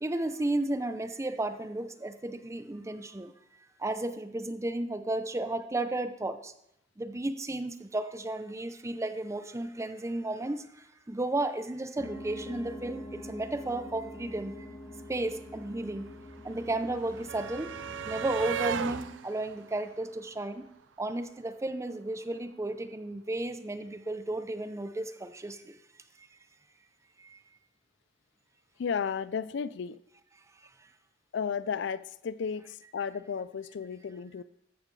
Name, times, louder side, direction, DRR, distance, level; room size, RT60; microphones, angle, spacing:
voice 1, 0.0-3.3 3.8-6.5 7.0-14.7 15.1-16.1 16.4-17.7 18.1-20.7 21.0-25.8 26.2-26.3 27.2-27.4, right 2 dB, 15° right, 0.5 m, -33 dB
sound 1, 12.0-20.1, left 1 dB, 25° left, 2.3 m, -46 dB
sound 2, 14.5-14.6 14.7-20.9 22.1-22.2 22.5-22.6, right 7 dB, 75° right, 0.4 m, -38 dB
voice 2, 28.8-30.0 31.3-34.4, left 6 dB, 70° left, 0.4 m, -33 dB
14.0 x 7.4 x 3.2 m
head